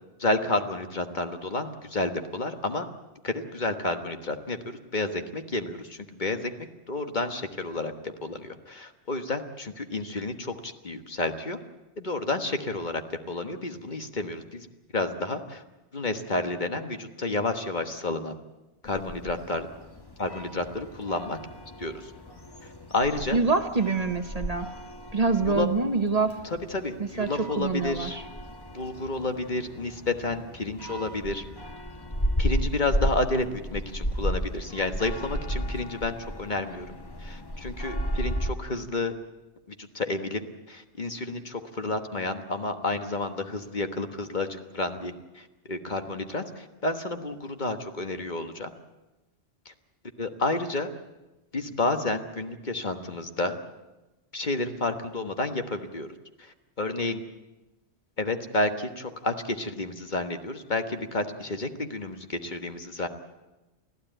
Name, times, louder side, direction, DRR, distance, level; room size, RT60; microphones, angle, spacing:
voice 1, 0.2-2.9 3.2-11.6 12.0-14.7 14.9-15.6 15.9-18.4 18.8-19.7 20.2-21.4 21.8-22.1 22.6-23.4 25.5-25.7 26.4-28.2 28.7-31.4 32.4-39.1 39.7-40.4 40.7-48.7 49.6-49.7 50.2-50.9 51.5-53.6 54.3-56.1 56.4-57.2 58.2-63.1, left 2 dB, 45° left, 7 dB, 1.4 m, -30 dB
sound 1, 18.8-38.5, equal, 20° left, 1.4 m, -34 dB
voice 2, 23.3-24.7 25.1-26.4 27.0-28.2, right 4 dB, 35° right, 8 dB, 1.1 m, -25 dB
25.0 x 15.0 x 9.0 m, 1.1 s
omnidirectional pair, 1.1 m